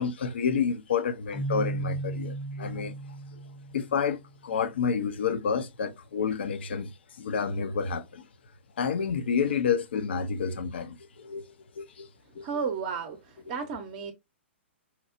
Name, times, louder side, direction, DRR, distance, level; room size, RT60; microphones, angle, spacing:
voice 1, 0.0-3.0 3.7-8.3 8.8-12.1 12.4-12.6, left 6 dB, 60° left, 0.5 m, -29 dB
Keyboard (musical), 1.3-4.2, right 2 dB, 5° left, 0.6 m, -35 dB
voice 2, 12.4-14.1, right 6 dB, 40° right, 0.6 m, -33 dB
4.2 x 2.0 x 2.4 m
figure-of-eight pair, 115°, 6 cm